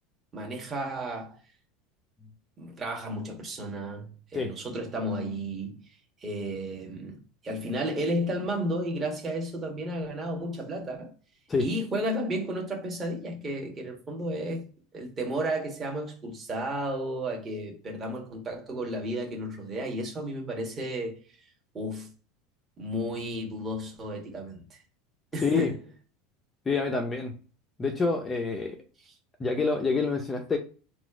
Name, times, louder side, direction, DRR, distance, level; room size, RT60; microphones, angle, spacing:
voice 1, 0.3-1.4 2.6-5.8 6.2-11.1 11.6-14.7 14.9-21.2 21.7-22.1 22.8-24.8 25.3-25.8, right 1 dB, 20° right, 1.3 m, -33 dB
voice 2, 25.4-25.7 26.7-27.4 27.8-28.8 29.4-30.6, left 4 dB, 15° left, 0.6 m, -27 dB
4.1 x 2.4 x 4.7 m
supercardioid pair, 155°, 0 cm